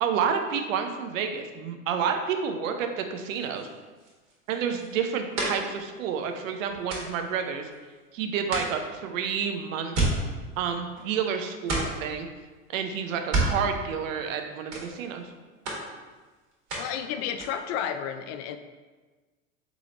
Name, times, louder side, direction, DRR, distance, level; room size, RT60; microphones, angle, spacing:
voice 1, 0.0-3.7 4.5-7.7 8.1-10.1 10.6-12.3 12.7-15.3, right 7 dB, 75° right, 6 dB, 0.6 m, -29 dB
sound 1, 3.2-8.1 8.5-11.3 11.6-12.2 13.1-14.4 14.7-15.3 15.6-17.0 17.3-17.8, right 2 dB, 40° right, 1.4 m, -33 dB
voice 2, 16.8-18.6, left 8 dB, 50° left, 8 dB, 0.4 m, -32 dB
3.7 x 3.3 x 3.7 m, 1.3 s
hypercardioid pair, 90°, 40 cm